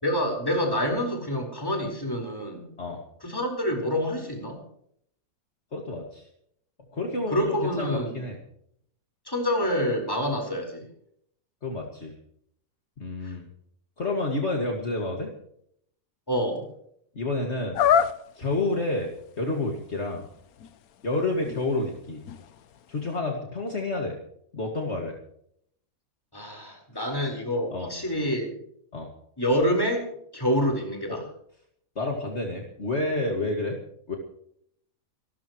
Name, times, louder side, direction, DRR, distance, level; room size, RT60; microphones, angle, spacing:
voice 1, 0.0-2.7 3.2-4.6 6.9-8.2 9.3-10.8 13.2-13.3 16.3-16.7 26.3-28.6 29.4-31.2, equal, 15° left, 1 dB, 4.7 m, -27 dB
voice 2, 5.7-6.3 6.9-8.4 11.6-12.2 13.0-13.5 14.0-15.3 17.1-17.8 18.4-19.1 19.4-20.3 21.0-22.2 22.9-24.2 24.5-25.2 27.1-27.3 27.7-27.9 28.9-29.1 31.1-31.2 32.0-33.8 34.1-34.2, left 2 dB, 50° left, 1 dB, 2.4 m, -29 dB
sound 1, 17.7-18.5 19.1-19.2 19.6-23.1, left 8 dB, 90° left, 1.3 m, -27 dB
27.5 x 13.0 x 3.1 m, 0.68 s
omnidirectional pair, 1.5 m